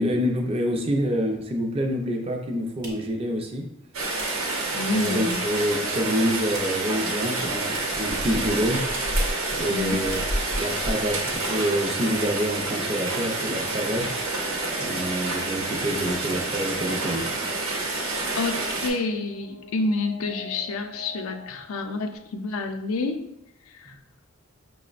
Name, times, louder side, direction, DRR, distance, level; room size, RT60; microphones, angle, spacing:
voice 1, 0.0-3.7 4.7-8.8 9.5-10.2 10.5-14.1 14.8-17.3, equal, 25° right, 2 dB, 0.4 m, -27 dB
sound 1, 2.4-5.7 6.0-6.9 7.2-8.1 8.4-9.3 9.6-9.7 10.0-10.4 10.8-10.9 11.2-11.8, right 2 dB, 50° right, 0.8 m, -46 dB
Rain, 3.9-18.9, right 2 dB, 85° right, 0.8 m, -28 dB
sound 2, 4.2-22.2, left 1 dB, 65° left, 0.7 m, -46 dB
voice 2, 4.7-5.4 9.7-10.0 18.4-23.2 23.7-24.0, left 3 dB, 90° left, 6 dB, 0.4 m, -28 dB
5.6 x 2.0 x 2.4 m, 0.84 s
head